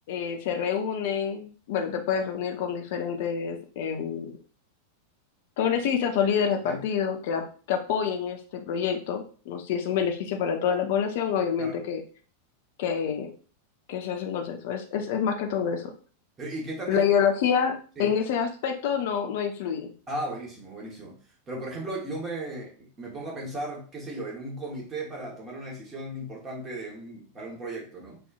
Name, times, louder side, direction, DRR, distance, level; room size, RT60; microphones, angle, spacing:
voice 1, 0.1-4.3 5.6-7.4 7.7-12.0 12.8-13.3 13.9-15.9 16.9-19.9, left 7 dB, 50° left, 4 dB, 0.6 m, -27 dB
voice 2, 16.4-17.0 18.0-18.1 20.1-21.2 21.5-28.2, right 1 dB, 20° right, -2 dB, 1.2 m, -36 dB
4.1 x 2.5 x 2.4 m, 0.39 s
figure-of-eight pair, 90°, 0 cm